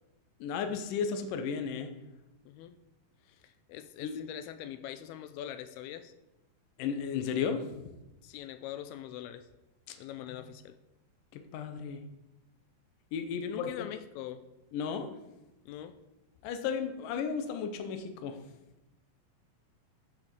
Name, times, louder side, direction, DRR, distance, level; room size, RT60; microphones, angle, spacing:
voice 1, 0.4-1.9 4.0-4.2 6.8-7.8 9.9-10.0 11.3-12.0 13.1-13.9 14.7-15.1 16.4-18.4, left 6 dB, 70° left, 7 dB, 2.3 m, -34 dB
voice 2, 2.5-2.8 3.3-6.1 8.2-9.5 10.0-10.8 13.4-14.4 15.7-16.0, left 11 dB, 90° left, 12 dB, 2.5 m, -43 dB
9.2 x 5.9 x 6.6 m, 0.96 s
omnidirectional pair, 4.4 m